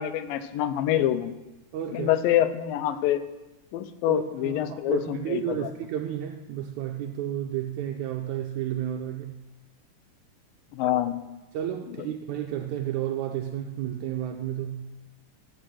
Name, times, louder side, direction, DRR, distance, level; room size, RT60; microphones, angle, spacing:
voice 1, 0.0-1.3 1.9-3.2 3.7-5.7 10.7-11.2 12.0-12.1, left 12 dB, 90° left, 11 dB, 2.4 m, -26 dB
voice 2, 1.7-2.1 4.1-9.4 11.5-14.9, right 11 dB, 80° right, 3 dB, 1.7 m, -32 dB
14.0 x 5.5 x 6.2 m, 1.0 s
omnidirectional pair, 3.9 m